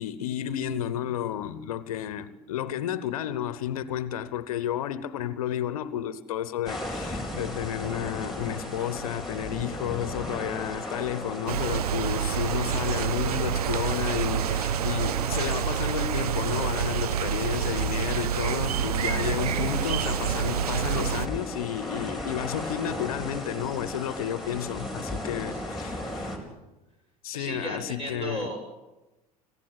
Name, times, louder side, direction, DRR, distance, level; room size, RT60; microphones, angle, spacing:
voice 1, 0.0-26.3 27.2-28.5, left 10 dB, 65° left, 1.0 m, -32 dB
sound 1, 6.7-26.4, left 1 dB, ahead, 4.6 m, -37 dB
sound 2, 11.5-21.3, right 9 dB, 75° right, 0.7 m, -27 dB
voice 2, 27.3-28.6, right 1 dB, 30° right, 7.1 m, -35 dB
26.0 x 15.5 x 8.1 m
figure-of-eight pair, 70°, 20 cm